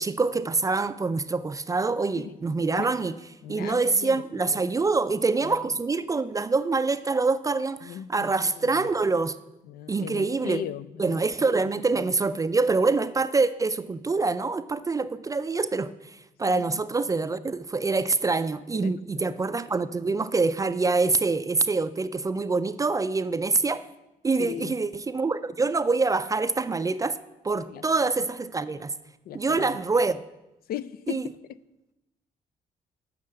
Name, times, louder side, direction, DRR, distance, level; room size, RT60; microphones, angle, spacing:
voice 1, 0.0-3.2 3.5-9.4 9.9-10.6 11.0-23.8 24.2-27.2 27.4-28.9 29.3-30.2 31.1-31.2, right 3 dB, 20° right, 0.3 m, -25 dB
voice 2, 3.4-4.6 5.4-5.6 7.8-8.9 9.7-11.2 11.9-12.1 16.5-16.8 18.8-19.4 24.4-24.7 27.7-27.8 29.3-29.7 30.7-31.3, left 11 dB, 80° left, 0.4 m, -38 dB
7.4 x 5.5 x 7.5 m
cardioid pair, 105°, 15 cm